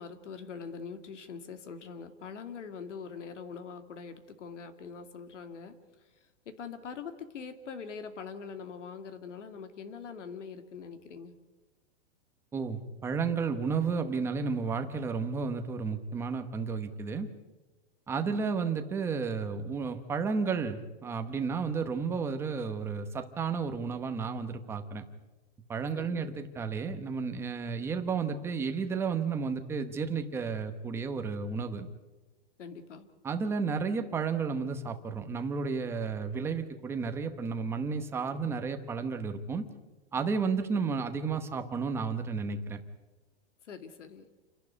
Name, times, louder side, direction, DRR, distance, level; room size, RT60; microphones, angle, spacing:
voice 1, 0.0-5.7 6.5-11.3 18.3-18.4 25.9-26.4 32.6-33.1 43.7-44.3, left 6 dB, 85° left, 8 dB, 2.7 m, -43 dB
voice 2, 12.5-17.3 18.1-25.0 25.7-31.9 33.2-39.7 40.1-42.8, right 5 dB, 5° right, 7 dB, 0.9 m, -32 dB
29.0 x 11.5 x 9.6 m, 1.2 s
hypercardioid pair, 170°, 35 cm